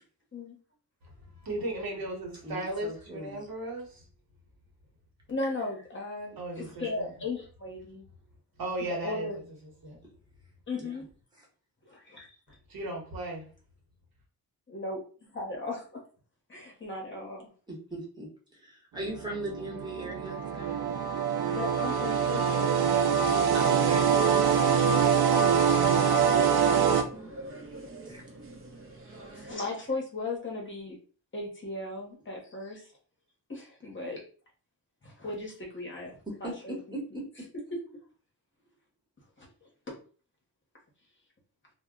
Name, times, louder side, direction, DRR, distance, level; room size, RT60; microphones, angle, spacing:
voice 1, 1.0-4.1 6.4-7.1 8.6-9.3 9.9-10.0 12.7-13.5, right 1 dB, 65° right, 1.0 m, -36 dB
voice 2, 2.4-3.4 10.0-10.1 10.7-10.9 17.7-20.8 23.5-24.1 28.1-28.2 36.4-36.5 36.9-37.0, right 1 dB, 10° right, 0.9 m, -39 dB
voice 3, 5.3-8.1 8.9-9.4 10.7-11.1 11.8-12.6 14.7-16.0 16.5-17.5 21.5-23.1 23.6-23.8 24.3-25.6 26.8-27.3 29.0-31.0 31.3-32.9 33.5-34.2 35.0-37.2 39.4-39.5 39.9-40.0, left 3 dB, 30° left, 0.8 m, -37 dB
sound 1, 19.0-27.0, right 7 dB, 85° right, 0.5 m, -24 dB
sound 2, 23.4-29.6, right 1 dB, 35° right, 0.5 m, -46 dB
2.2 x 2.0 x 3.5 m
wide cardioid pair, 165°, 37 cm